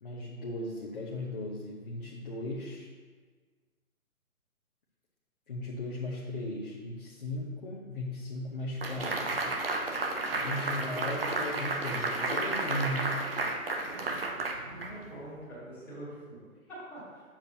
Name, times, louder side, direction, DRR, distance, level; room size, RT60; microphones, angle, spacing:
voice 1, 0.0-2.9 5.5-9.5 10.3-13.1, left 1 dB, 35° left, -5 dB, 0.9 m, -37 dB
sound 1, 8.8-15.3, right 2 dB, 40° right, 0.7 m, -32 dB
voice 2, 10.4-11.2 14.7-17.2, right 1 dB, 5° left, -11 dB, 1.7 m, -45 dB
7.2 x 6.7 x 2.8 m, 1.5 s
figure-of-eight pair, 145°, 43 cm